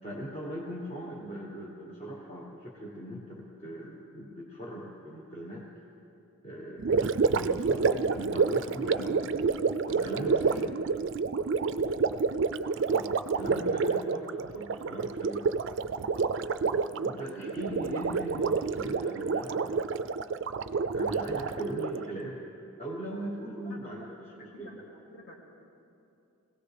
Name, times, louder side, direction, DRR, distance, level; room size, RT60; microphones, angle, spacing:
voice 1, 0.0-5.7 6.4-9.4 10.0-10.8 12.9-15.5 16.6-20.5 20.9-22.5 22.8-24.8, right 1 dB, 30° left, -4 dB, 1.3 m, -40 dB
Gurgling, 6.8-22.1, right 5 dB, 55° right, 0.4 m, -29 dB
voice 2, 8.5-9.0 9.8-10.5 16.1-16.3 23.6-25.4, equal, 50° left, -2 dB, 2.4 m, -50 dB
22.0 x 17.0 x 3.4 m, 2.7 s
head